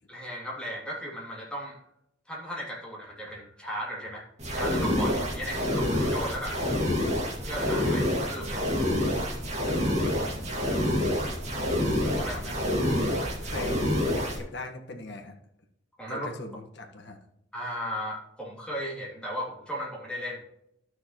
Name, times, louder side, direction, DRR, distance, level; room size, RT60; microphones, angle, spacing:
voice 1, 0.1-1.8 2.3-4.3 4.5-7.0 7.4-8.6 12.2-12.4 16.0-16.3 17.5-20.4, equal, 5° left, -4 dB, 2.8 m, -36 dB
sound 1, 4.4-14.4, left 1 dB, 40° right, 2.1 m, -27 dB
voice 2, 5.4-5.8 10.2-10.6 11.4-11.7 12.2-13.8 14.1-15.4 16.1-17.2, left 2 dB, 65° left, 3 dB, 1.5 m, -41 dB
12.5 x 6.4 x 3.1 m, 0.82 s
head